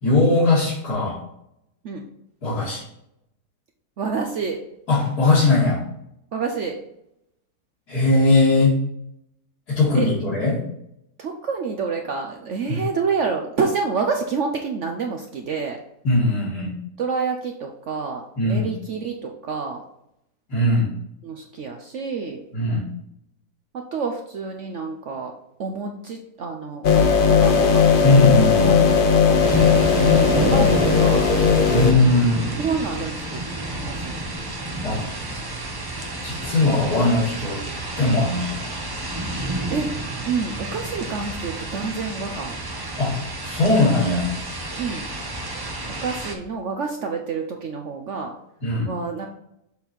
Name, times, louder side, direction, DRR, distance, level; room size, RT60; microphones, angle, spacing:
voice 1, 0.0-1.2 2.4-2.8 4.9-5.8 7.9-8.8 9.7-10.6 12.7-12.8 16.0-16.7 18.4-18.7 20.5-20.9 22.5-22.8 28.0-28.8 30.6-30.7 31.7-32.5 34.8-35.1 36.2-37.6 38.0-38.7 43.0-44.3 48.6-48.9, left 2 dB, 70° left, -10 dB, 2.7 m, -19 dB
voice 2, 4.0-4.6 6.3-6.7 9.9-10.1 11.2-15.8 17.0-19.8 21.2-22.4 23.7-25.3 25.6-27.8 28.6-31.3 32.6-33.4 33.7-34.2 39.7-39.9 40.2-42.6 44.8-45.1 45.9-48.3 48.9-49.3, right 5 dB, 60° right, 3 dB, 0.8 m, -28 dB
sound 1, 26.8-31.9, left 6 dB, 50° left, 0.6 m, -17 dB
sound 2, 29.4-46.3, right 2 dB, 25° right, 0.5 m, -30 dB
7.2 x 4.0 x 4.3 m, 0.78 s
omnidirectional pair, 1.7 m